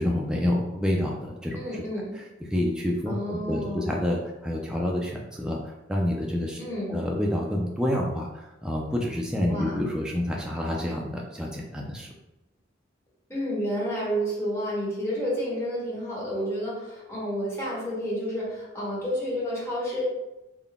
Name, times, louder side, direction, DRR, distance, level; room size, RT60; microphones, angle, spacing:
voice 1, 0.0-1.8 2.4-6.6 6.9-12.1, left 1 dB, 5° right, -2 dB, 0.3 m, -28 dB
voice 2, 1.5-2.1 3.1-3.9 6.6-7.0 9.5-9.9 13.3-20.0, equal, 15° left, -7 dB, 1.2 m, -30 dB
3.7 x 2.2 x 3.5 m, 0.98 s
head